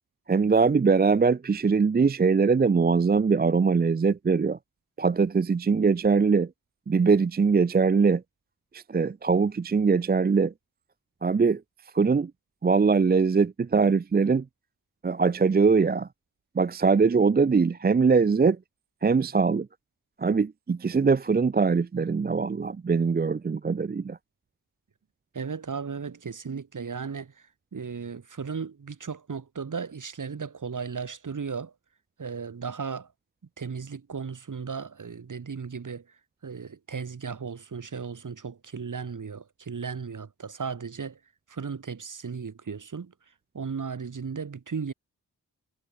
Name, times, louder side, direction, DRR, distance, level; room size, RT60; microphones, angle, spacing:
voice 1, 0.3-4.6 5.0-6.5 6.9-8.2 8.7-10.5 11.2-11.6 11.9-12.3 12.6-14.4 15.0-16.1 16.6-18.6 19.0-19.7 20.2-24.2, right 5 dB, 25° right, 0.6 m, -22 dB
voice 2, 25.3-27.3 27.7-31.7 32.2-33.1 33.6-36.0 36.4-41.2 41.5-43.1 43.5-44.9, right 5 dB, 50° right, 2.3 m, -35 dB
cardioid pair, 45°, 39 cm